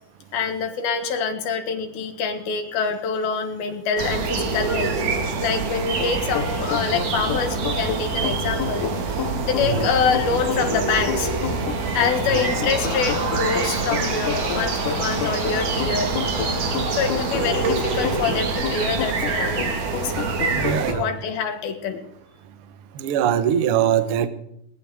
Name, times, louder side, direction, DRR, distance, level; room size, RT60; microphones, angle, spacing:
voice 1, 0.3-4.9 5.4-8.9 9.4-11.3 11.9-16.1 16.9-19.6 20.0-20.1 20.9-22.1, left 6 dB, 85° left, 6 dB, 3.7 m, -25 dB
sound 1, 4.0-20.9, right 4 dB, 60° right, 3.3 m, -26 dB
sound 2, 6.0-21.1, left 8 dB, 65° left, 2.9 m, -31 dB
Crowd, 11.9-18.7, right 1 dB, 10° right, 2.9 m, -33 dB
voice 2, 20.5-21.1 23.0-24.3, right 9 dB, 80° right, 11 dB, 1.2 m, -22 dB
21.0 x 18.5 x 3.7 m, 0.76 s
omnidirectional pair, 4.2 m